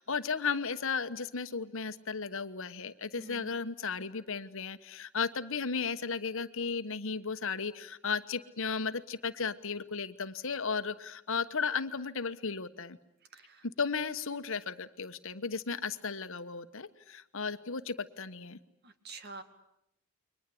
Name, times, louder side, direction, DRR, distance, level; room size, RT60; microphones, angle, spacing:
voice 1, 0.0-13.0 13.8-18.6, left 5 dB, 60° left, 11 dB, 1.2 m, -35 dB
voice 2, 3.2-3.5 13.3-13.7 18.8-19.4, right 3 dB, 50° right, 9 dB, 2.2 m, -47 dB
30.0 x 23.5 x 8.5 m, 0.77 s
head